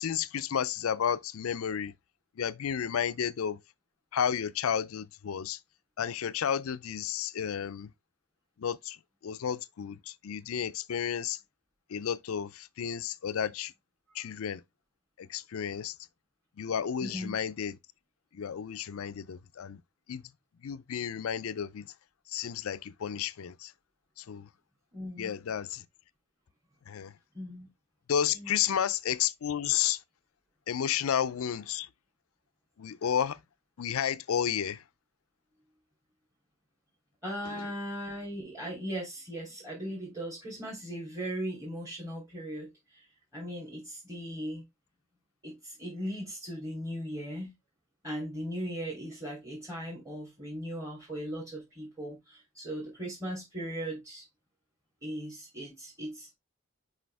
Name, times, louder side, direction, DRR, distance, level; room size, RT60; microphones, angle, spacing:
voice 1, 0.0-1.9 2.4-3.6 4.1-5.6 6.0-7.9 8.6-9.0 9.2-11.4 11.9-13.7 14.1-14.6 15.2-15.9 16.6-17.8 18.3-19.8 20.1-20.2 20.6-21.9 22.3-23.7 24.2-24.5 25.2-25.8 26.9-27.1 28.1-30.0 30.7-31.9 32.8-33.4 33.8-34.8, left 8 dB, 80° left, 0.4 m, -32 dB
voice 2, 17.0-17.4 24.9-25.3 27.3-27.7 28.3-28.5 37.2-43.1 43.3-44.6 45.4-47.5 48.0-54.3 55.0-56.3, equal, 15° right, 3.1 m, -38 dB
6.2 x 5.0 x 3.4 m
head